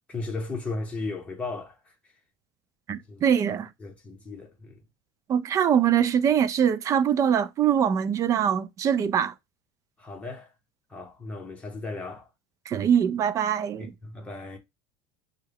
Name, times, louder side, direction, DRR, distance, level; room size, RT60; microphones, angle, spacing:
voice 1, 0.1-1.8 3.1-3.2 3.8-4.8 10.0-10.5 10.9-12.3 13.8-14.6, left 3 dB, 10° left, 1.2 m, -35 dB
voice 2, 2.9-3.7 5.3-9.3 12.7-13.9, right 8 dB, 30° right, 0.4 m, -23 dB
5.4 x 2.3 x 3.4 m
cardioid pair, 150°, 11 cm